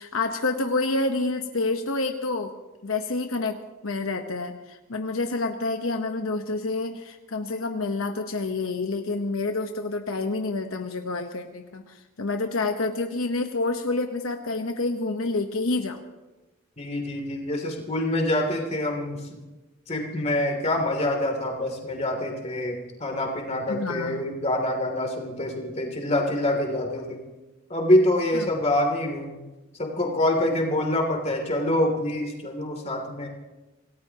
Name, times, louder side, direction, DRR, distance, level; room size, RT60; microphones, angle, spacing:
voice 1, 0.0-2.5 2.8-16.0 23.7-24.2 28.3-28.5, left 3 dB, 75° left, 4 dB, 1.1 m, -28 dB
voice 2, 16.8-19.3 19.9-27.2 27.7-29.4 29.8-33.3, left 1 dB, 30° left, 1 dB, 2.9 m, -26 dB
26.5 x 18.0 x 3.0 m, 1.1 s
head